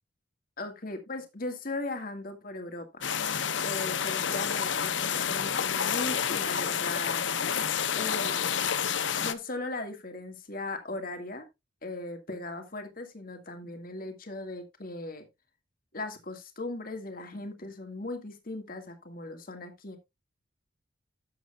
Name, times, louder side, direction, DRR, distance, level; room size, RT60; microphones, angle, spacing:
voice 1, 0.6-3.0 3.6-7.2 8.0-8.5 9.1-11.5 11.8-15.3 15.9-20.0, left 2 dB, 45° left, 2.0 m, -38 dB
sound 1, 3.0-9.3, left 7 dB, 70° left, 0.8 m, -29 dB
12.5 x 7.8 x 2.4 m
head